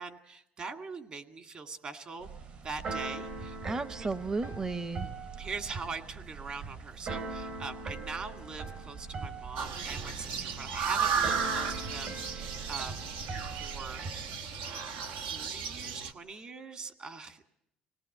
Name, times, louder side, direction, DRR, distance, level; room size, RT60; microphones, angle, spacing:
voice 1, 0.0-2.3 2.6-4.1 5.4-13.1 13.5-14.0 15.0-17.5, right 4 dB, 40° right, 6 dB, 2.0 m, -42 dB
Keyboard (musical), 2.2-14.3, right 4 dB, 60° right, 4.5 m, -41 dB
voice 2, 3.6-5.1, right 3 dB, 20° right, 13 dB, 0.8 m, -34 dB
sound 1, 9.6-16.1, right 6 dB, 85° right, 1.3 m, -34 dB
25.5 x 18.5 x 7.8 m, 0.77 s
cardioid pair, 135°, 3 cm